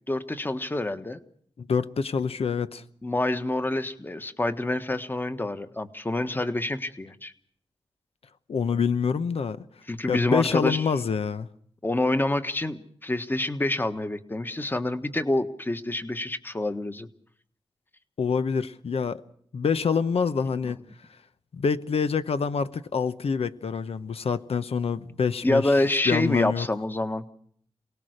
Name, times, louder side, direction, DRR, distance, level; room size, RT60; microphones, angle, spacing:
voice 1, 0.1-1.2 3.0-7.3 9.9-10.8 11.8-17.1 25.4-27.2, left 2 dB, 20° left, 1.4 m, -27 dB
voice 2, 1.6-2.8 8.5-9.6 10.1-11.5 18.2-19.2 19.5-20.8 21.5-25.7 26.1-26.7, left 6 dB, 85° left, 1.0 m, -26 dB
28.0 x 19.0 x 6.6 m
wide cardioid pair, 130°, 10 cm